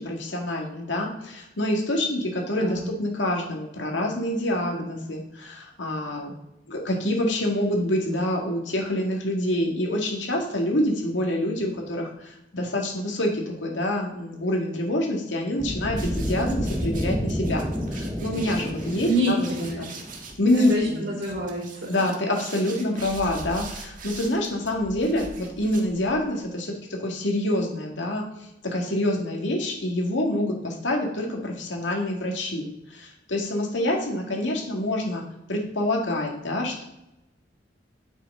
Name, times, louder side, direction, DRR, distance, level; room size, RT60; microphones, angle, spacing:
voice 1, 0.0-6.3 6.7-19.5 19.8-19.9 20.4-21.0 21.9-26.7 27.0-28.2 28.6-32.6 32.9-35.2 35.5-36.8, left 1 dB, 80° left, 0 dB, 2.2 m, -26 dB
voice 2, 2.6-2.9 19.0-19.8 20.5-21.9, right 1 dB, 75° right, -2 dB, 3.6 m, -27 dB
sound 1, 15.6-20.5, equal, 10° right, 1.0 m, -30 dB
sound 2, 16.0-26.4, right 3 dB, 45° right, 1.4 m, -42 dB
9.6 x 6.7 x 3.9 m, 0.88 s
head